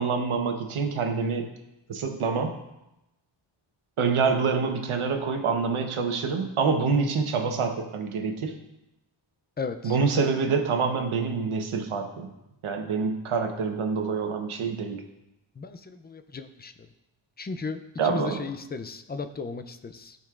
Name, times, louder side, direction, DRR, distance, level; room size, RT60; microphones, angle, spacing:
voice 1, 0.0-1.5 1.9-2.6 4.0-8.5 9.8-12.3 12.6-15.0 18.0-18.4, right 5 dB, 85° right, 4 dB, 1.1 m, -26 dB
voice 2, 9.6-9.9 15.6-16.7 17.4-20.2, left 4 dB, 20° left, 9 dB, 0.4 m, -35 dB
13.5 x 5.4 x 2.5 m, 0.91 s
wide cardioid pair, 135°, 48 cm